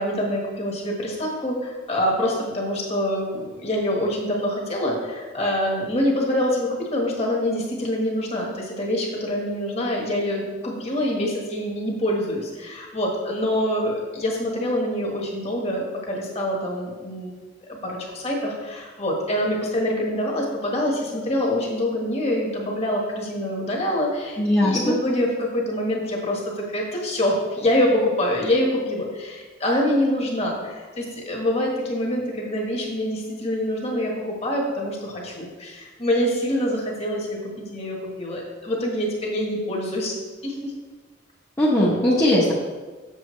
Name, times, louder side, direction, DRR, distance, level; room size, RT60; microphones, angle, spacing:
voice 1, 0.0-17.3 17.7-40.2 40.4-40.7, left 1 dB, 35° left, -1 dB, 1.4 m, -25 dB
voice 2, 24.4-24.9 41.6-42.5, left 1 dB, 15° left, -8 dB, 0.9 m, -19 dB
7.3 x 6.8 x 3.2 m, 1.3 s
head